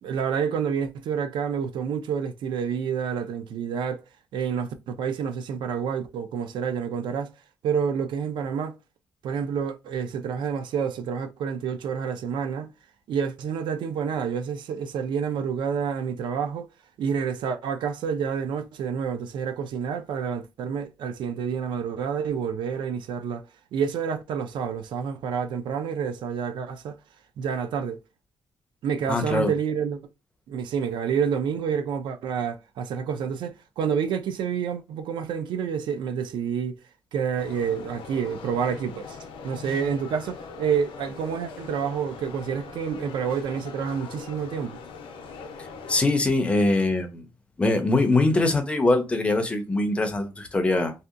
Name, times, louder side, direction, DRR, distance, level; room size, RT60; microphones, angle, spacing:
voice 1, 0.0-4.0 4.3-7.3 7.6-8.8 9.2-12.7 13.1-16.7 17.0-27.0 27.4-28.0 28.8-30.0 30.5-36.8 37.1-39.2 39.4-44.8, right 7 dB, 65° right, 0.4 m, -28 dB
voice 2, 29.1-29.5 45.9-47.2 47.6-50.9, left 2 dB, 15° left, 0.4 m, -22 dB
sound 1, 37.4-46.0, left 5 dB, 85° left, 0.5 m, -41 dB
2.7 x 2.2 x 2.4 m
cardioid pair, 165°, 9 cm